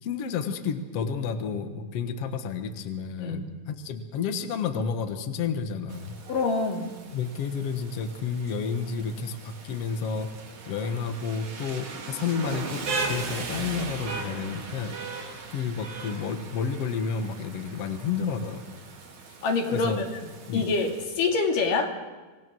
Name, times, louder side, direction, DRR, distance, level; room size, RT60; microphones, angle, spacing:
voice 1, 0.0-6.2 7.1-10.3 10.7-12.8 13.1-15.0 15.5-18.6 19.7-20.0 20.5-20.7, left 6 dB, 55° left, 7 dB, 2.2 m, -30 dB
Rain, 5.9-21.0, right 3 dB, 65° right, 3.9 m, -38 dB
voice 2, 6.3-6.9 19.4-20.1 20.5-22.0, left 4 dB, 85° left, 2 dB, 4.0 m, -26 dB
26.0 x 18.5 x 6.2 m, 1.3 s
omnidirectional pair, 3.7 m